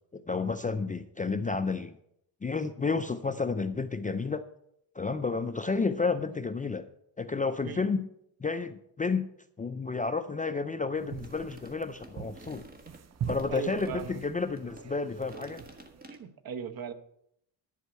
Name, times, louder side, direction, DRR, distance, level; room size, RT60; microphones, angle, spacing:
voice 1, 0.1-2.0 2.4-4.4 4.9-6.8 7.2-8.0 8.4-9.3 9.6-12.6 13.3-15.6, left 4 dB, 20° left, 9 dB, 0.4 m, -31 dB
sound 1, 10.9-16.0, right 8 dB, 40° right, 0.6 m, -42 dB
sound 2, 11.1-14.9 15.2-16.2, right 1 dB, 20° right, 1.6 m, -51 dB
voice 2, 13.5-14.2 15.3-15.4 16.1-16.9, right 8 dB, 55° right, 11 dB, 1.0 m, -38 dB
11.0 x 5.5 x 8.1 m, 0.75 s
cardioid pair, 135°, 43 cm